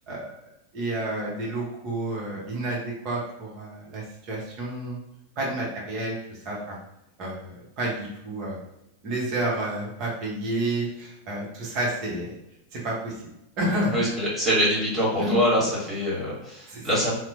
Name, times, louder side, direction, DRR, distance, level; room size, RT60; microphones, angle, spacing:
voice 1, 0.7-5.0 5.4-6.8 7.2-8.6 9.0-12.3 12.7-13.2 13.6-14.1 15.2-15.4 16.7-16.9, right 1 dB, 40° right, -3 dB, 0.9 m, -30 dB
voice 2, 13.9-17.1, equal, 5° left, -7 dB, 1.4 m, -24 dB
2.9 x 2.1 x 2.6 m, 0.84 s
figure-of-eight pair, 90°, 0 cm